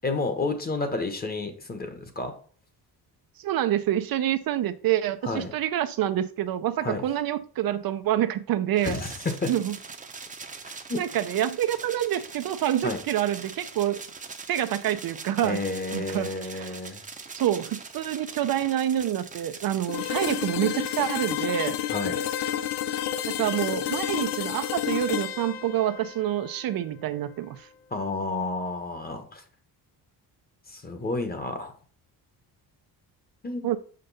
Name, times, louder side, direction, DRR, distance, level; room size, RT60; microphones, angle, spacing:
voice 1, 0.0-2.4 5.2-5.5 6.8-7.0 8.8-9.5 10.9-11.0 12.8-13.0 15.4-17.0 21.9-22.2 27.9-29.4 30.7-31.7 33.4-33.7, left 3 dB, 20° left, 1.2 m, -30 dB
voice 2, 3.4-9.0 9.5-9.8 11.0-14.0 14.5-15.6 15.9-16.7 17.3-21.8 23.3-27.7 33.6-33.8, right 11 dB, 60° right, 0.6 m, -27 dB
sound 1, 8.8-20.5, right 4 dB, 20° right, 0.7 m, -42 dB
sound 2, 19.9-27.7, left 11 dB, 80° left, 0.7 m, -31 dB
6.6 x 5.2 x 4.1 m
cardioid pair, 135°, 41 cm